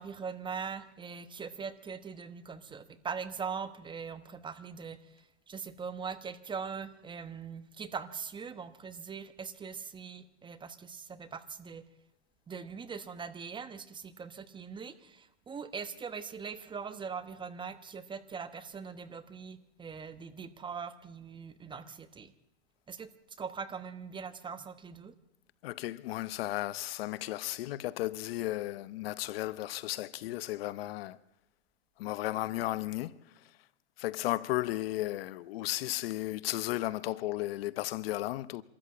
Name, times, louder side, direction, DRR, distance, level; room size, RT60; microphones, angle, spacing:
voice 1, 0.0-5.0 5.5-11.8 12.5-22.3 22.9-23.1 23.4-25.1, right 6 dB, 15° right, 1.0 m, -41 dB
voice 2, 25.6-31.2 32.0-33.5 34.0-38.6, left 16 dB, 60° left, 0.8 m, -34 dB
26.0 x 13.5 x 8.6 m
hypercardioid pair, 130°, 34 cm